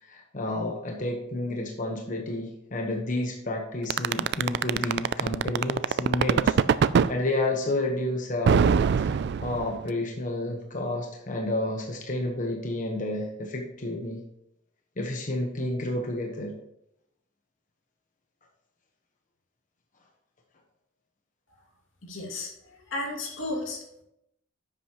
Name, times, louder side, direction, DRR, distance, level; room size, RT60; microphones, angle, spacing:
voice 1, 0.1-6.6 7.1-8.6 9.0-14.2 15.0-16.5, left 1 dB, 40° left, 1 dB, 1.2 m, -30 dB
sound 1, 3.9-7.1 8.5-9.9, right 6 dB, 60° right, 0.3 m, -21 dB
voice 2, 22.0-22.5 22.9-24.0, left 2 dB, 90° left, -1 dB, 2.5 m, -33 dB
10.5 x 8.1 x 3.0 m, 0.80 s
head